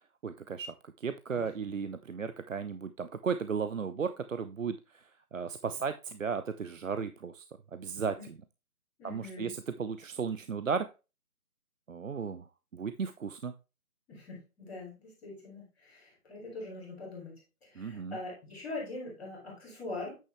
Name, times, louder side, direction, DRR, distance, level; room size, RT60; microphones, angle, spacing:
voice 1, 0.2-7.4 7.7-8.2 9.0-10.9 11.9-12.5 12.7-13.5 17.8-18.2, right 6 dB, 60° right, 11 dB, 0.7 m, -35 dB
voice 2, 9.0-9.5 14.1-17.3 17.6-20.1, left 2 dB, 5° left, -15 dB, 2.2 m, -42 dB
8.7 x 6.7 x 3.2 m, 0.29 s
figure-of-eight pair, 170°, 44 cm